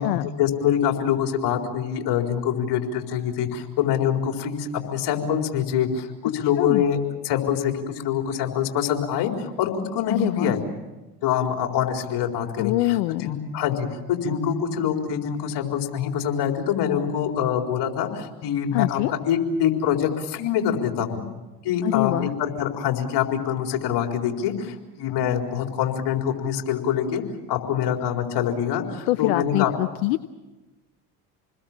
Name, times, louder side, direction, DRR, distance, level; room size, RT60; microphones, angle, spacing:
voice 1, 0.0-10.6 11.2-21.2 21.6-27.2 27.5-29.7, left 9 dB, 60° left, 3 dB, 4.3 m, -25 dB
voice 2, 10.1-10.5 12.6-13.3 18.7-19.1 21.8-22.3 29.1-30.2, left 19 dB, 75° left, 13 dB, 0.9 m, -24 dB
28.0 x 21.0 x 7.4 m, 1.1 s
hypercardioid pair, 75°, 46 cm